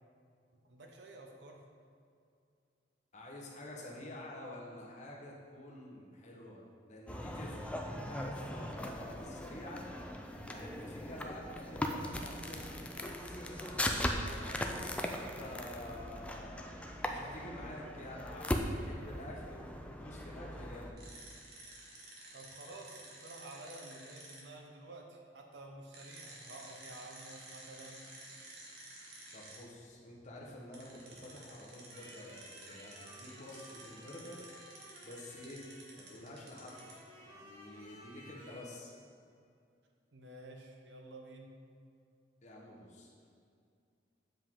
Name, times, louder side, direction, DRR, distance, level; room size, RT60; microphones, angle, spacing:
voice 1, 0.5-1.6 22.3-28.0 40.1-41.5, right 2 dB, 85° right, 2 dB, 0.8 m, -51 dB
voice 2, 3.1-9.9 10.1-14.6 15.1-20.9 29.3-34.4 35.0-35.7 36.0-36.8 37.2-38.9 42.4-43.3, left 1 dB, 45° left, -3 dB, 1.1 m, -49 dB
sound 1, 7.1-20.9, left 1 dB, 5° left, 0.4 m, -39 dB
sound 2, 21.0-24.4 25.9-29.6 30.7-37.0, right 2 dB, 65° right, 1.3 m, -52 dB
sound 3, 31.9-36.2 36.7-38.6, equal, 35° right, 1.5 m, -56 dB
7.6 x 4.8 x 3.7 m, 2.4 s
head